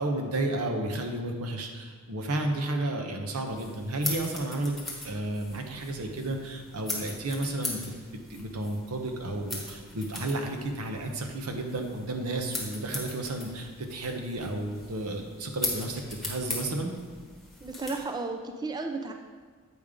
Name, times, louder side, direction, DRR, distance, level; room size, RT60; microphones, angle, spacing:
voice 1, 0.0-4.7 5.0-7.8 8.3-16.9, right 1 dB, 85° right, 3 dB, 0.8 m, -32 dB
sound 1, 3.5-18.0, left 2 dB, ahead, 1.2 m, -40 dB
voice 2, 17.6-19.1, right 3 dB, 20° right, 4 dB, 0.3 m, -33 dB
8.1 x 5.1 x 3.6 m, 1.5 s
head